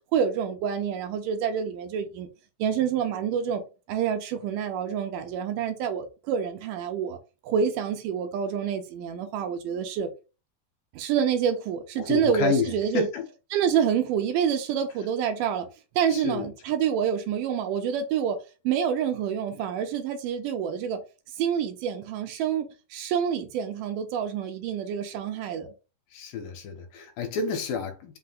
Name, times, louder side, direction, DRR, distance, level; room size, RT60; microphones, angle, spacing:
voice 1, 0.1-2.3 2.6-3.6 3.9-7.2 7.4-10.1 11.0-13.1 13.5-15.7 16.0-18.4 18.6-21.0 21.4-25.7, right 8 dB, 80° right, 2.1 m, -27 dB
voice 2, 12.0-13.2 16.1-16.5 26.1-28.2, left 5 dB, 75° left, 2.3 m, -30 dB
5.6 x 2.1 x 3.8 m
omnidirectional pair, 4.1 m